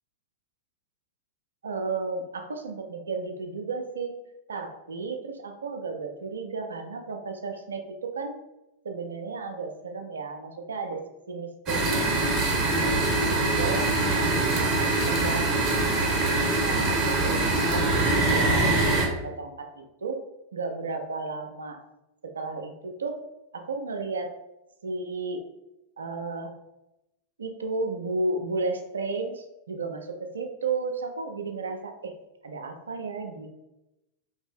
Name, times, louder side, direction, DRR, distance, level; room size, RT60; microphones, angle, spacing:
voice 1, 1.6-4.1 4.5-8.4 8.8-12.2 12.6-17.4 17.7-20.2 20.5-21.8 22.3-23.2 23.5-24.3 24.8-25.4 26.0-26.6 27.4-32.1 32.4-33.5, right 3 dB, 70° right, 5 dB, 0.4 m, -33 dB
sound 1, 11.7-19.1, right 2 dB, 30° right, 0.8 m, -23 dB
2.9 x 2.5 x 3.3 m, 0.92 s
figure-of-eight pair, 90°, 0 cm